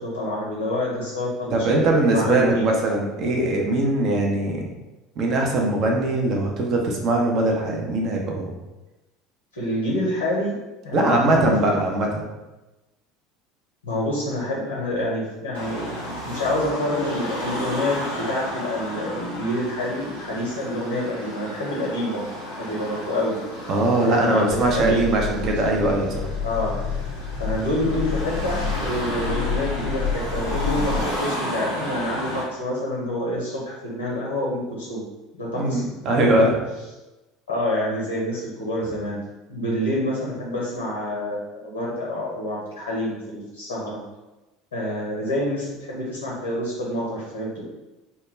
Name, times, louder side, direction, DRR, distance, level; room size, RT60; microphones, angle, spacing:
voice 1, 0.0-2.7 9.5-10.5 10.8-11.8 13.8-22.2 22.6-23.4 23.9-25.3 26.4-26.7 27.4-30.0 30.3-35.0 35.4-35.8 36.1-36.5 37.5-39.2 39.5-44.0 44.7-47.6, left 1 dB, 85° left, -5 dB, 0.6 m, -27 dB
voice 2, 1.5-4.7 5.2-8.5 10.9-12.2 23.7-26.3 35.5-36.6, right 2 dB, 45° right, 1 dB, 0.5 m, -21 dB
Car passing by / Traffic noise roadway noise / Engine, 15.5-32.4, equal, 85° right, 0.8 m, -33 dB
sound 1, 24.5-31.0, left 6 dB, 35° left, 0.4 m, -29 dB
2.2 x 2.1 x 3.1 m, 1.1 s
figure-of-eight pair, 70°, 0 cm